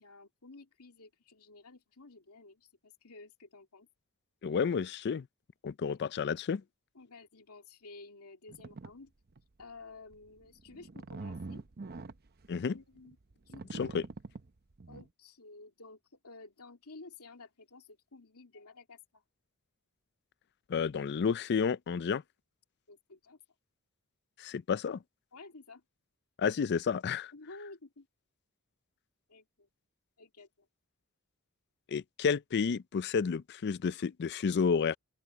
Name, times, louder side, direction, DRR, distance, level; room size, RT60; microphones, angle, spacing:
voice 1, 0.0-3.9 5.9-6.0 6.9-9.1 9.6-11.6 12.7-13.2 13.5-14.0 14.9-19.2 22.9-23.4 25.3-25.8 27.3-28.1 29.3-29.7 30.2-30.7, left 3 dB, 75° left, 2.7 m, -52 dB
voice 2, 4.4-5.3 5.6-6.6 12.5-12.7 13.8-14.0 20.7-22.2 24.4-25.0 26.4-27.3 31.9-35.0, left 6 dB, 50° left, 0.4 m, -31 dB
sound 1, 8.5-8.9 9.4-9.6 10.1-15.1, right 3 dB, 45° right, 0.7 m, -44 dB
open air
head